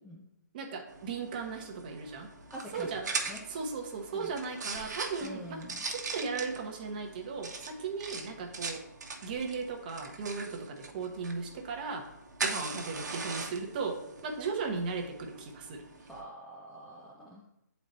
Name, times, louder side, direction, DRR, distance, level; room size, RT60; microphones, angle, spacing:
voice 1, 0.5-2.3 2.7-3.1 3.5-8.8 9.2-12.1 12.4-15.8, right 4 dB, 30° right, 3 dB, 0.9 m, -37 dB
sound 1, 0.9-16.2, right 4 dB, 65° right, 1.0 m, -41 dB
voice 2, 2.5-2.9 3.3-3.4 4.1-4.3 5.2-5.8 16.1-17.4, equal, ahead, -8 dB, 0.4 m, -46 dB
8.6 x 4.0 x 3.1 m, 0.86 s
hypercardioid pair, 160°, 10 cm